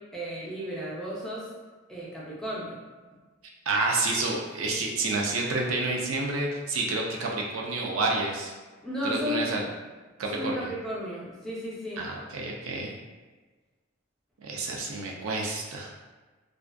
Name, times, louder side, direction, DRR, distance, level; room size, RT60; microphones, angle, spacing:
voice 1, 0.1-1.5 1.9-2.8 8.8-9.5 10.3-12.0, equal, ahead, -7 dB, 0.5 m, -33 dB
voice 2, 3.7-8.5 9.0-9.7 10.2-10.7 12.0-12.9 14.4-15.9, right 3 dB, 80° right, -1 dB, 0.4 m, -29 dB
2.4 x 2.4 x 2.2 m, 1.3 s
head